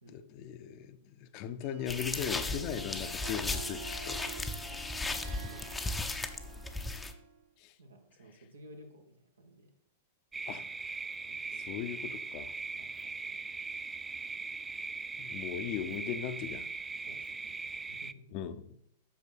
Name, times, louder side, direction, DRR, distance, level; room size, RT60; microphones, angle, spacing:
voice 1, 0.1-4.2 7.6-7.7 10.5-10.7 11.7-12.5 15.2-16.7 18.3-18.6, left 9 dB, 40° left, 0.8 m, -38 dB
Harp, 1.6-7.4, right 5 dB, 45° right, 2.5 m, -48 dB
sound 1, 1.9-7.1, left 3 dB, 10° left, 0.8 m, -36 dB
voice 2, 4.6-5.8 7.8-9.7 11.3-12.0 12.8-13.4 17.1-18.4, equal, 75° right, 1.8 m, -56 dB
sound 2, 10.3-18.1, right 4 dB, 15° right, 0.3 m, -40 dB
8.6 x 6.3 x 5.9 m
figure-of-eight pair, 100°, 0 cm